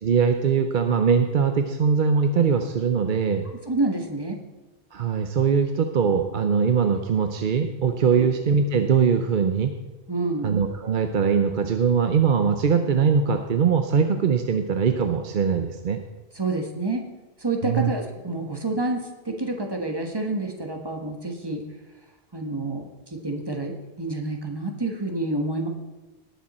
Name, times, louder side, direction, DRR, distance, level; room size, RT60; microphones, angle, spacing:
voice 1, 0.0-3.4 4.9-9.7 10.4-16.0 17.6-17.9, right 6 dB, 55° right, 7 dB, 0.8 m, -21 dB
voice 2, 3.7-4.4 8.1-8.2 10.1-10.5 16.3-17.1 17.4-21.6 22.3-25.7, right 2 dB, 25° right, 3 dB, 1.4 m, -28 dB
18.5 x 7.2 x 4.2 m, 1.2 s
omnidirectional pair, 1.1 m